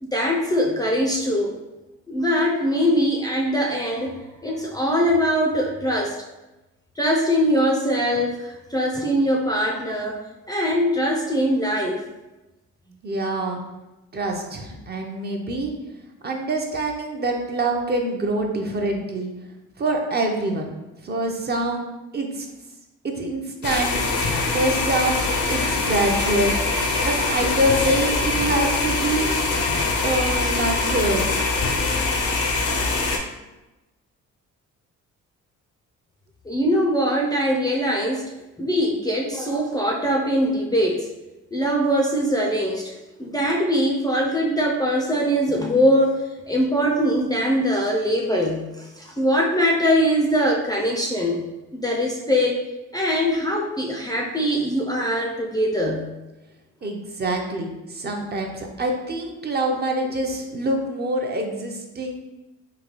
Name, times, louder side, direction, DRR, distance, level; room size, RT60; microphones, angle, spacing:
voice 1, 0.0-1.5 2.1-4.1 4.4-6.2 7.0-10.2 10.5-12.0 36.5-38.3 38.6-41.1 41.5-51.4 51.7-52.6 52.9-56.1, equal, 15° left, -1 dB, 0.4 m, -22 dB
voice 2, 13.0-13.6 14.1-15.7 16.2-19.3 19.8-20.7 21.0-21.8 22.1-22.5 23.0-24.0 24.5-26.6 27.0-29.3 30.0-31.3 56.8-62.1, right 1 dB, 35° right, 2 dB, 0.5 m, -25 dB
sound 1, 23.6-33.2, left 3 dB, 80° left, 0.6 m, -23 dB
3.8 x 2.3 x 3.0 m, 1.0 s
cardioid pair, 90°, 30 cm